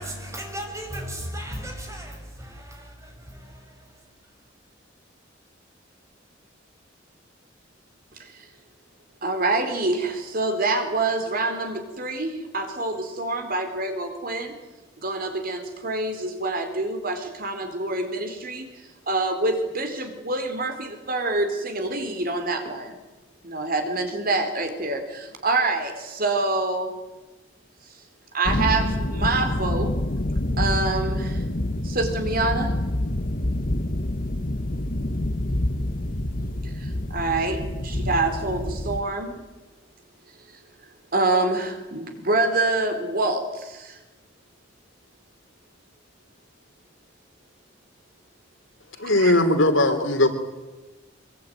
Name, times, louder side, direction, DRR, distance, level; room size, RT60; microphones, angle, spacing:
voice 1, 0.0-3.6, equal, 15° right, 6.3 m, -36 dB
voice 2, 9.2-14.5 15.0-18.7 19.1-23.0 23.4-26.9 28.3-29.9 30.6-31.4 31.8-32.7 36.6-39.4 41.1-44.0 49.2-49.4, right 2 dB, 50° right, 4.3 m, -26 dB
sound 1, 28.4-39.0, left 1 dB, 45° left, 1.3 m, -27 dB
voice 3, 49.0-50.3, left 1 dB, 85° left, 3.5 m, -19 dB
24.5 x 23.0 x 9.5 m
head